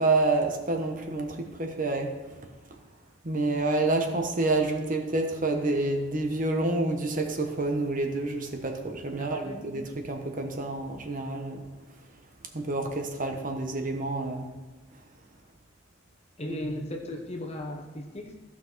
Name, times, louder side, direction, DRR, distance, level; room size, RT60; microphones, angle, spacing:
voice 1, 0.0-2.1 3.2-11.6 12.5-14.5, right 2 dB, 40° right, 3 dB, 1.1 m, -28 dB
voice 2, 9.2-9.8 16.4-18.3, left 1 dB, 30° left, 2 dB, 1.1 m, -36 dB
15.0 x 5.8 x 4.6 m, 1.3 s
head